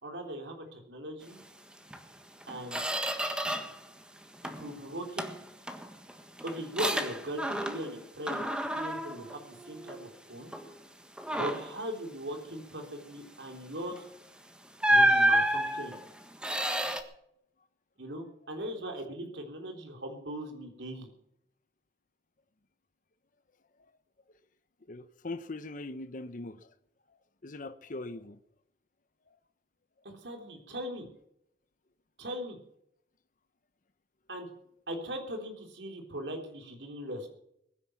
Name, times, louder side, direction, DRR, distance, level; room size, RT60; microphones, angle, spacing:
voice 1, 0.0-1.4 2.5-2.8 4.6-5.3 6.4-8.4 8.7-10.5 11.3-14.0 14.9-16.0 18.0-21.1 30.0-31.1 32.2-32.6 34.3-34.5 34.9-37.3, equal, 90° right, 3.6 m, -39 dB
Squeak, 1.9-2.0 2.4-3.8 4.2-4.7 5.2-8.0 8.3-10.1 10.5-10.7 11.2-11.8 13.9-14.1 14.8-17.0, right 1 dB, 5° right, 1.5 m, -30 dB
voice 2, 24.9-26.6 27.4-28.4, left 2 dB, 50° left, 0.9 m, -41 dB
21.5 x 9.8 x 5.9 m
head